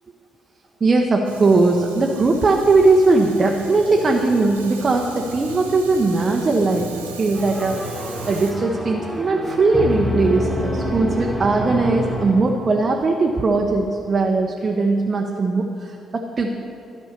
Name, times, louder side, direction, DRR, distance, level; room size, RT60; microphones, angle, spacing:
voice 1, 0.8-7.8 8.3-16.5, right 3 dB, 35° right, 1 dB, 0.7 m, -19 dB
Fire, 1.2-8.5, right 4 dB, 80° right, 0.7 m, -38 dB
sound 1, 7.3-12.9, equal, ahead, 1.7 m, -27 dB
11.5 x 5.5 x 6.6 m, 2.7 s
figure-of-eight pair, 40°, 0 cm